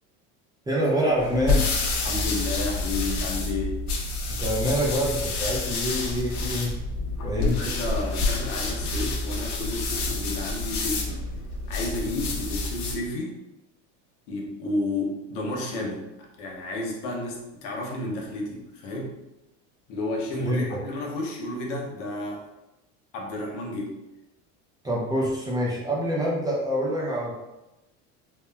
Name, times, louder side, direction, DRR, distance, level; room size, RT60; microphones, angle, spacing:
voice 1, 0.7-1.7 4.4-6.8 7.2-7.6 20.4-20.8 24.8-27.3, equal, 10° right, -5 dB, 0.4 m, -26 dB
sound 1, 1.2-13.1, left 3 dB, 50° left, 0.6 m, -28 dB
voice 2, 2.0-3.8 7.4-11.2 11.7-13.3 14.3-16.1 16.4-19.1 19.9-22.4 23.1-24.0, left 2 dB, 85° left, -1 dB, 0.8 m, -31 dB
2.9 x 2.2 x 2.3 m, 0.95 s
supercardioid pair, 130°, 36 cm